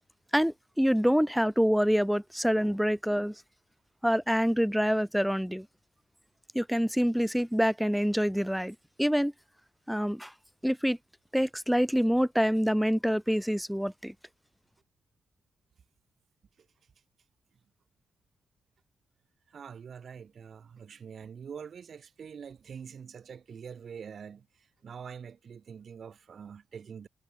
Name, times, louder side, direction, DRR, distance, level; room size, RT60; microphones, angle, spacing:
voice 1, 0.3-3.3 4.0-5.7 6.5-9.3 9.9-10.3 10.6-11.0 11.3-14.1, equal, ahead, 4.5 m, -26 dB
voice 2, 19.5-27.1, right 7 dB, 50° right, 6.9 m, -45 dB
cardioid pair, 120°, 0 cm